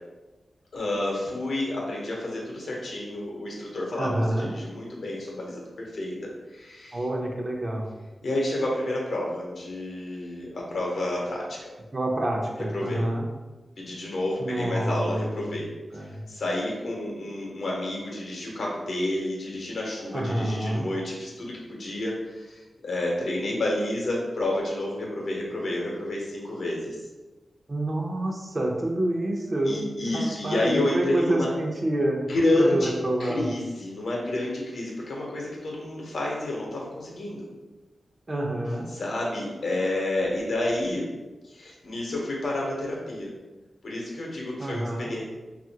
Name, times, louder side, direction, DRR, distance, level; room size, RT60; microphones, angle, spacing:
voice 1, 0.7-6.2 6.5-7.0 8.2-11.7 12.7-13.0 13.8-15.7 15.9-27.0 29.7-31.5 32.3-32.9 33.2-37.5 38.9-41.1 41.4-43.3 43.8-45.2, left 1 dB, 80° left, -3 dB, 0.8 m, -29 dB
voice 2, 4.0-4.5 6.9-7.9 11.9-13.3 14.4-15.5 15.9-16.2 20.1-20.8 27.7-29.8 30.1-32.2 32.6-33.6 38.3-38.9 44.6-45.1, right 1 dB, 40° right, 0 dB, 0.6 m, -27 dB
2.7 x 2.4 x 2.7 m, 1.2 s
cardioid pair, 65°, 0 cm